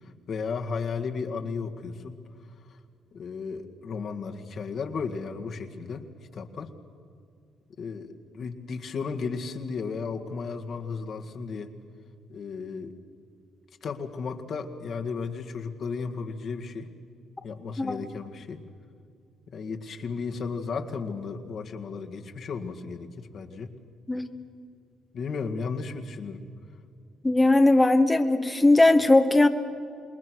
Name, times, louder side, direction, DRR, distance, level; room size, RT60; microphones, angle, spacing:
voice 1, 0.0-2.2 2.7-2.8 3.1-6.1 6.3-6.7 7.8-11.7 12.3-13.0 13.8-16.9 17.4-18.6 19.5-23.7 25.1-26.4, left 5 dB, 60° left, 4 dB, 1.9 m, -34 dB
voice 2, 27.2-29.5, left 2 dB, 15° left, 6 dB, 1.2 m, -19 dB
27.5 x 21.0 x 6.3 m, 2.4 s
cardioid pair, 90°, 0 cm